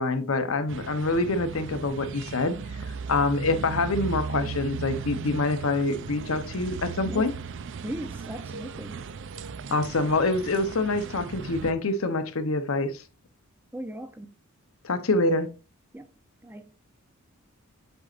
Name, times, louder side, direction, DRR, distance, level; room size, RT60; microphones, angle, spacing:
voice 1, 0.0-2.6 3.1-7.3 9.7-13.0 14.8-15.5, left 2 dB, 70° left, 0.8 m, -26 dB
sound 1, 0.7-11.7, right 5 dB, 55° right, 0.4 m, -37 dB
voice 2, 7.8-9.0 13.7-14.3 15.9-16.1 16.4-16.7, right 1 dB, 10° right, 0.5 m, -37 dB
7.9 x 5.4 x 2.5 m
head